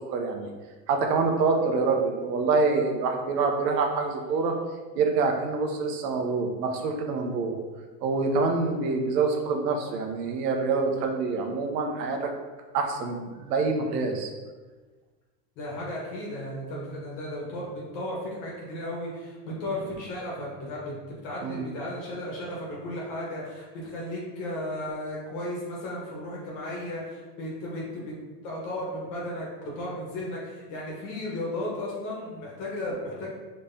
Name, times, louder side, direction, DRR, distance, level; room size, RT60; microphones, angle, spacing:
voice 1, 0.1-0.5 0.9-4.5 4.9-7.6 8.0-12.3 12.7-14.3 21.4-21.7, right 4 dB, 75° right, 3 dB, 0.9 m, -26 dB
voice 2, 15.6-28.0 28.4-33.3, left 1 dB, 40° left, -4 dB, 1.3 m, -35 dB
5.2 x 3.2 x 2.7 m, 1.3 s
supercardioid pair, 160°, 49 cm